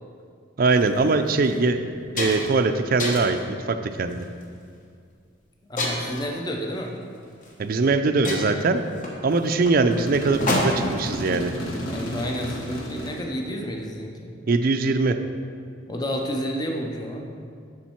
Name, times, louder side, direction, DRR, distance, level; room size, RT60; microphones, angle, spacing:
voice 1, 0.6-4.2 7.6-8.8 9.2-11.5 14.5-15.2, right 3 dB, 45° right, 9 dB, 0.4 m, -22 dB
sound 1, 0.7-0.9 1.4-1.6 1.9-2.6 3.0-3.4 4.1-4.4 5.8-6.3 7.4-7.5 7.8-7.9 8.2-11.0, left 1 dB, 40° left, 0.9 m, -28 dB
voice 2, 5.7-7.0 11.9-14.4 15.9-17.3, equal, 20° left, 1 dB, 0.6 m, -30 dB
sound 2, 9.9-13.2, equal, 80° left, 1.2 m, -32 dB
7.2 x 6.3 x 4.4 m, 2.2 s
head